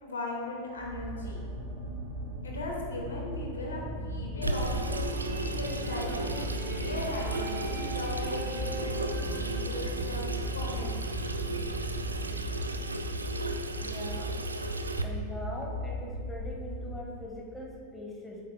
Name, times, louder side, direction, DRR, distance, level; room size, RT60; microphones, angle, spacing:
voice 1, 0.0-1.4 2.4-5.0 5.5-11.1, left 1 dB, 70° left, -1 dB, 1.6 m, -38 dB
sound 1, 0.8-17.0, equal, 50° right, 2.0 m, -38 dB
sound 2, 3.8-14.7, right 2 dB, 20° right, 1.6 m, -38 dB
Water tap faucet / Sink (filling or washing), 4.4-15.0, right 2 dB, 80° right, 0.4 m, -36 dB
voice 2, 13.8-14.3 15.0-18.4, left 1 dB, 10° left, -3 dB, 1.7 m, -41 dB
9.3 x 8.5 x 2.2 m, 2.2 s
figure-of-eight pair, 90°, 0 cm